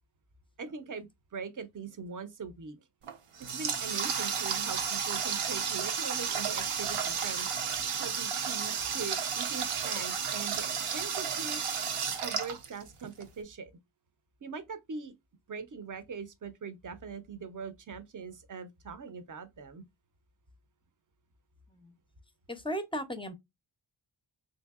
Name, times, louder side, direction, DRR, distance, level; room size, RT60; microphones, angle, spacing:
voice 1, 0.6-2.8 3.4-11.6 12.2-13.7 14.4-15.1 15.5-19.8, right 5 dB, 40° right, 0.6 m, -42 dB
Water tap faucet, 3.0-13.2, right 6 dB, 85° right, 0.7 m, -32 dB
voice 2, 22.5-23.3, equal, 10° left, 0.5 m, -35 dB
3.4 x 2.6 x 2.3 m
wide cardioid pair, 75°, 50 cm